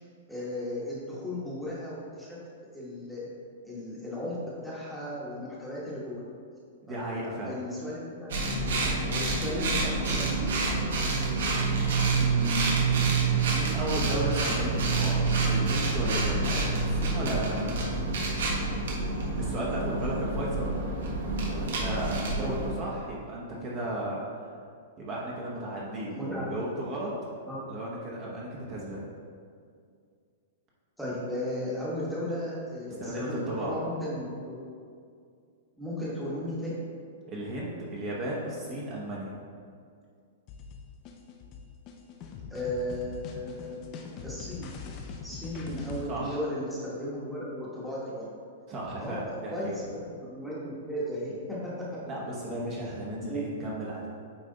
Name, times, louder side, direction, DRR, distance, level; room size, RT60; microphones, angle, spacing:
voice 1, 0.3-2.4 2.7-3.2 3.6-4.4 4.6-6.2 6.9-7.0 7.4-8.3 8.8-10.6 20.6-20.7 22.4-22.6 26.1-26.4 27.4-27.6 31.0-34.6 35.8-36.7 42.5-43.8 44.2-44.7 45.2-48.3 49.0-49.2 49.5-51.9 53.3-53.4, left 1 dB, ahead, -8 dB, 1.1 m, -35 dB
voice 2, 6.9-7.5 12.1-12.9 13.5-17.8 18.1-18.3 19.4-20.6 21.4-24.2 25.0-27.1 27.7-29.0 33.0-33.8 37.3-39.4 46.1-46.4 48.7-49.7 52.1-54.1, right 1 dB, 25° right, -5 dB, 0.9 m, -34 dB
sound 1, 8.3-22.7, right 3 dB, 70° right, 1.3 m, -27 dB
sound 2, 40.5-46.0, left 6 dB, 25° left, 0.5 m, -42 dB
8.9 x 3.3 x 3.8 m, 2.2 s
hypercardioid pair, 165°, 0 cm